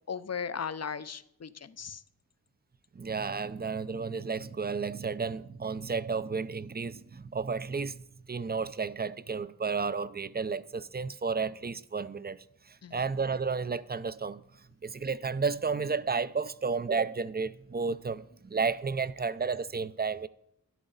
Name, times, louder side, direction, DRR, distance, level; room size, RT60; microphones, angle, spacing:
voice 1, 0.1-2.0 12.8-13.0, left 6 dB, 45° left, 0.6 m, -37 dB
voice 2, 2.9-8.0 8.3-14.4 14.8-20.3, right 5 dB, 25° right, 0.5 m, -32 dB
12.5 x 10.5 x 4.0 m
cardioid pair, 50°, 37 cm